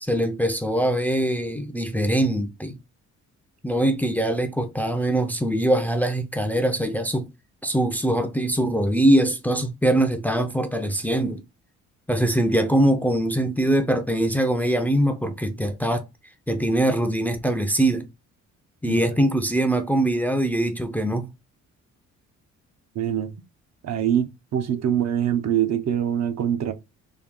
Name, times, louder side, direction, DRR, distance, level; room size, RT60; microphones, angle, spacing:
voice 1, 0.0-2.8 3.6-7.3 7.6-11.4 12.1-16.0 16.5-18.1 18.8-21.3, right 1 dB, 5° left, 0.5 m, -22 dB
voice 2, 23.0-23.3 23.8-26.7, right 10 dB, 60° right, 0.7 m, -24 dB
3.5 x 2.3 x 3.7 m
cardioid pair, 90°, 30 cm